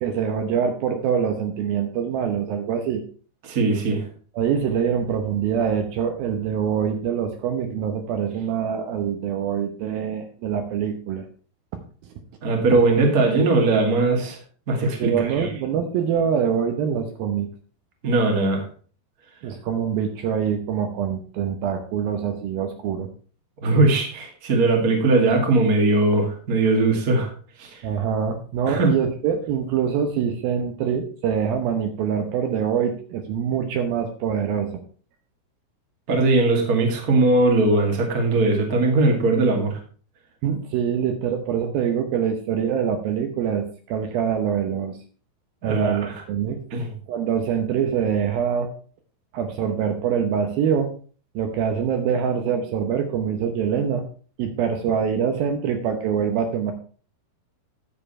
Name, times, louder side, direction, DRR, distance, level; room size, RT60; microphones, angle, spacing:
voice 1, 0.0-3.0 4.4-11.3 11.7-11.8 15.0-17.5 19.4-23.1 27.8-34.8 40.4-45.0 45.6-46.6 47.1-48.7 49.3-50.9 51.4-54.0 54.4-56.7, right 8 dB, 75° right, 6 dB, 2.6 m, -24 dB
voice 2, 3.4-4.1 12.4-14.4 14.7-15.5 18.0-18.6 23.6-27.3 27.6-27.8 28.7-28.9 36.1-39.8 45.6-46.1 46.7-46.9, right 2 dB, 30° right, 2 dB, 1.9 m, -20 dB
10.0 x 7.6 x 4.3 m, 0.41 s
omnidirectional pair, 4.7 m